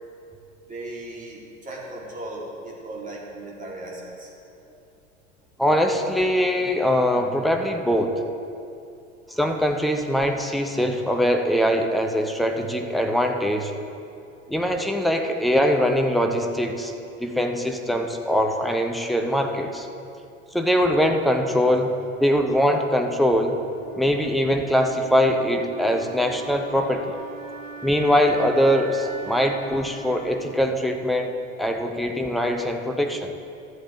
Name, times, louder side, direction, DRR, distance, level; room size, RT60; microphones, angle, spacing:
voice 1, 0.7-4.3, right 2 dB, 20° right, -4 dB, 2.5 m, -37 dB
voice 2, 5.6-8.2 9.3-13.7 14.5-16.9 17.2-19.9 20.5-23.6 24.0-27.1 27.8-33.3, equal, ahead, 4 dB, 0.5 m, -22 dB
Wind instrument woodwind instrument, 23.5-31.5, right 5 dB, 50° right, 1.1 m, -41 dB
13.5 x 7.9 x 3.7 m, 2.6 s
figure-of-eight pair, 80°, 40 cm